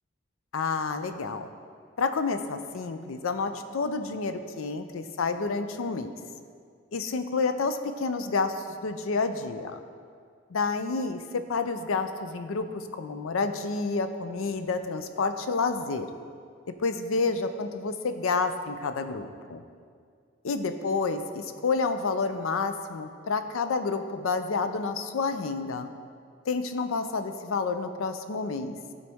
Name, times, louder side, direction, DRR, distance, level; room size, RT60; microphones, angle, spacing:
voice 1, 0.5-1.5 2.0-6.2 6.9-9.8 10.5-16.1 16.8-19.6 20.4-25.9 26.5-28.8, left 4 dB, 85° left, 9 dB, 0.5 m, -29 dB
12.5 x 4.1 x 3.5 m, 2.1 s
head